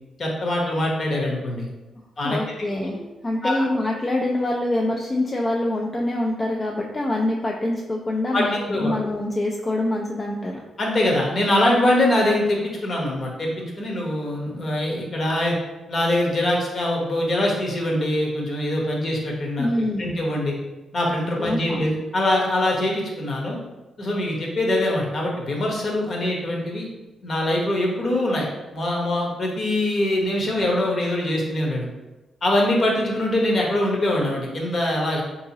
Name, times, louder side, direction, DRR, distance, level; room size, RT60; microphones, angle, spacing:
voice 1, 0.2-1.7 2.2-2.4 2.7-3.0 3.4-3.6 8.3-8.9 10.8-15.5 15.9-20.6 20.9-23.6 24.0-26.9 27.2-28.4 28.7-31.9 32.4-35.2, left 1 dB, 50° left, -2 dB, 1.0 m, -23 dB
voice 2, 2.2-3.0 3.2-10.6 19.6-20.1 21.4-21.9, left 1 dB, 30° left, -1 dB, 0.4 m, -25 dB
3.7 x 2.8 x 2.8 m, 1.1 s
cardioid pair, 75°, 0 cm